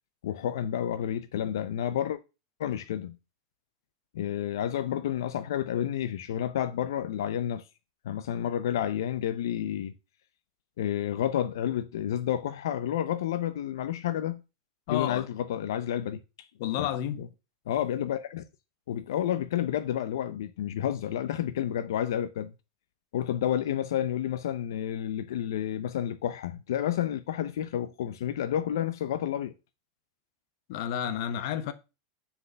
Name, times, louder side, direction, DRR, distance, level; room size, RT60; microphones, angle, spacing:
voice 1, 0.2-2.2 2.6-3.1 4.1-7.7 8.0-9.9 10.8-14.4 14.9-16.5 16.8-16.9 17.2-17.3 17.7-18.4 18.9-22.5 23.1-29.5, left 10 dB, 85° left, 0.6 m, -30 dB
voice 2, 14.9-15.3 16.6-17.2 30.7-31.7, left 10 dB, 55° left, 0.9 m, -31 dB
6.7 x 4.9 x 6.5 m
supercardioid pair, 160°, 2 cm